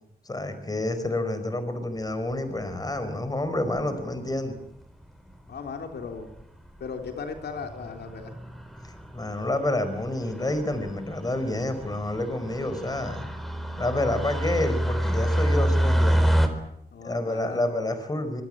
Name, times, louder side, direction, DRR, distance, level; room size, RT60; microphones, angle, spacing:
voice 1, 0.2-4.5 8.8-13.3 13.8-16.3 17.0-18.4, left 1 dB, 20° left, 10 dB, 4.9 m, -29 dB
sound 1, 2.3-2.8 3.8-4.2 5.0-5.1 5.3-5.4 5.7-5.8 6.1-6.4 6.8-7.1 7.4-16.5, right 1 dB, ahead, 4.1 m, -28 dB
voice 2, 5.5-6.3 6.8-8.3 16.9-17.9, left 5 dB, 80° left, 5 dB, 3.6 m, -37 dB
25.0 x 22.5 x 8.9 m, 0.77 s
wide cardioid pair, 105°, 17 cm